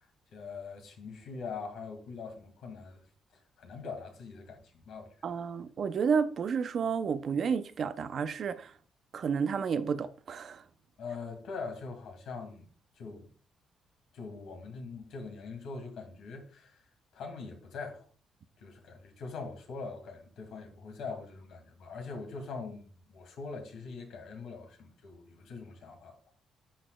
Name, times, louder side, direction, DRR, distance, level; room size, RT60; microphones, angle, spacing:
voice 1, 0.3-3.0 3.3-5.1 11.0-12.7 13.0-13.3 14.1-16.8 17.1-18.1 18.6-26.2, left 4 dB, 75° left, 2.0 m, -42 dB
voice 2, 5.2-8.7 9.1-10.6, right 6 dB, 55° right, 0.5 m, -31 dB
11.0 x 4.1 x 2.2 m
cardioid pair, 90°, 0 cm